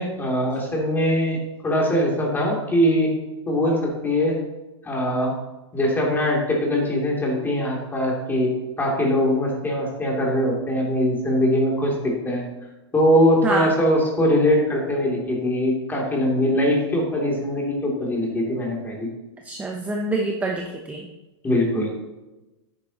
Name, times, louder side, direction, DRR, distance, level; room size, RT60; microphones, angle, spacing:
voice 1, 0.0-3.1 3.5-4.4 4.8-5.3 5.7-12.4 12.9-19.1 21.4-21.9, left 1 dB, 15° left, -2 dB, 3.0 m, -22 dB
voice 2, 13.4-13.7 19.4-21.1, right 2 dB, 10° right, 1 dB, 0.9 m, -26 dB
10.5 x 9.6 x 3.0 m, 1.0 s
hypercardioid pair, 130°, 15 cm